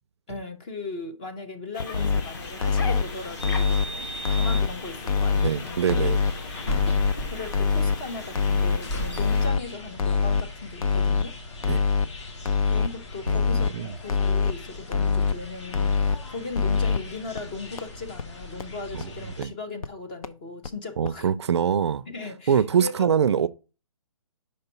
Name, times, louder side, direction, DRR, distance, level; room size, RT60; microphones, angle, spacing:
voice 1, 0.3-5.8 6.9-11.4 12.6-21.3 22.1-23.1, left 3 dB, 15° left, 0.4 m, -38 dB
sound 1, 1.7-9.5, left 3 dB, 35° left, 1.2 m, -40 dB
sound 2, 1.8-2.2 2.6-3.0 3.4-3.8 4.2-4.7 5.1-5.5 5.9-6.3 6.7-7.1 7.5-8.0 8.4-8.8 9.2-9.6 10.0-10.4 10.8-11.2 11.6-12.1 12.5-12.9 13.3-13.7 14.1-14.5 14.9-15.3 15.7-16.2 16.5-17.0 17.4-17.5 17.8-17.9 18.2-18.3 18.6-18.7 19.0-19.1 19.4-19.5 19.8-19.9 20.2-20.3 20.6-20.7 21.0-21.1, left 5 dB, 80° left, 0.6 m, -23 dB
sound 3, 1.9-19.4, left 1 dB, 50° left, 1.7 m, -38 dB
voice 2, 5.4-6.2 11.7-11.8 13.3-13.9 18.9-19.1 19.4-19.5 21.0-22.0 22.5-23.5, right 8 dB, 50° right, 0.4 m, -24 dB
5.2 x 3.9 x 5.5 m
hypercardioid pair, 160°, 18 cm